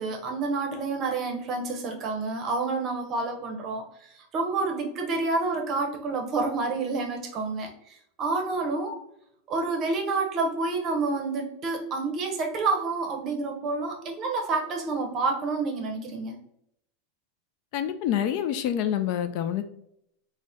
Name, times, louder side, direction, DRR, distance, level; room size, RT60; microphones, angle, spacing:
voice 1, 0.0-9.0 9.5-16.3, right 3 dB, 30° right, 2 dB, 0.8 m, -29 dB
voice 2, 17.7-19.6, left 10 dB, 50° left, 9 dB, 0.3 m, -27 dB
3.9 x 2.1 x 3.6 m, 0.73 s
supercardioid pair, 155°, 0 cm